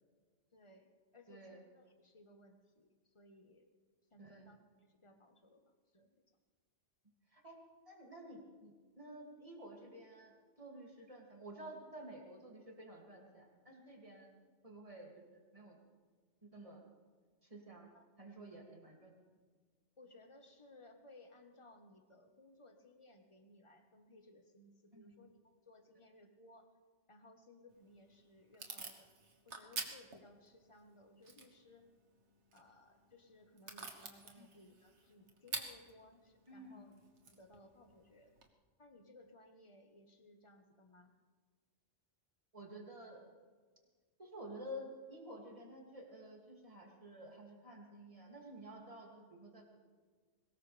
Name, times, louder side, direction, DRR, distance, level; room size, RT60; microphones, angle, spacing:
voice 1, 0.5-3.7 4.1-6.2 17.9-18.0 18.4-18.6 20.0-25.3 25.6-26.7 27.1-29.1 29.4-31.9 32.5-36.9 37.3-38.3 38.8-41.1, left 2 dB, 25° left, 5 dB, 1.3 m, -62 dB
voice 2, 1.3-1.6 4.2-4.5 7.3-7.6 7.9-14.3 14.6-15.8 16.4-16.8 17.4-17.9 18.2-19.2 24.9-25.1 34.3-34.5 36.5-36.9 42.5-43.2 44.2-49.8, right 1 dB, 30° right, -1 dB, 2.7 m, -52 dB
Packing tape duct tape / Tearing, 27.7-38.5, right 4 dB, 75° right, 1.6 m, -50 dB
22.0 x 19.0 x 3.4 m, 1.5 s
omnidirectional pair, 1.2 m